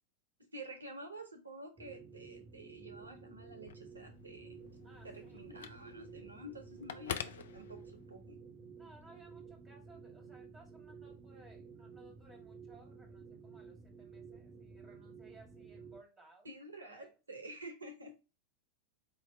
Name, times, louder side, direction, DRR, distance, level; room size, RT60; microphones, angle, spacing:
voice 1, 0.5-4.7 5.0-8.4 16.4-18.1, right 1 dB, 75° right, 0.8 m, -50 dB
sound 1, 1.8-16.0, right 5 dB, 30° right, 0.7 m, -53 dB
Telephone, 3.5-8.3, left 8 dB, 60° left, 0.4 m, -47 dB
voice 2, 4.8-5.4 8.7-16.5 16.8-17.1, right 2 dB, 10° right, 1.8 m, -61 dB
4.5 x 2.8 x 3.2 m
figure-of-eight pair, 90°, 0 cm